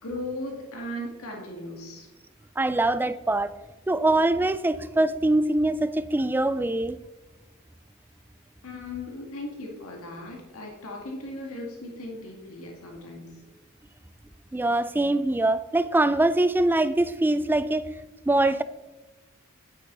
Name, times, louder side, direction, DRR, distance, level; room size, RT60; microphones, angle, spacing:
voice 1, 0.0-2.1 8.6-13.3, left 1 dB, 80° left, 1.9 m, -37 dB
voice 2, 2.6-3.5 3.9-7.0 14.5-17.9 18.3-18.6, right 2 dB, 10° right, 0.3 m, -23 dB
9.5 x 8.5 x 3.9 m
head